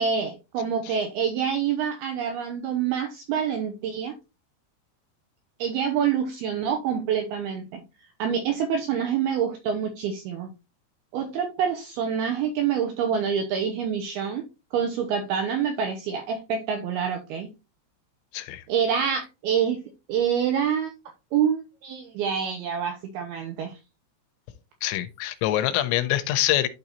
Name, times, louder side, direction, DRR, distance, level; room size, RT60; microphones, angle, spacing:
voice 1, 0.0-4.1 5.6-7.8 8.2-10.5 11.1-14.5 14.7-17.5 18.7-19.8 20.1-20.9 21.3-23.7, right 7 dB, 85° right, 2.2 m, -26 dB
voice 2, 18.3-18.6 24.8-26.7, left 14 dB, 85° left, 2.9 m, -25 dB
11.5 x 3.9 x 2.8 m
omnidirectional pair, 5.3 m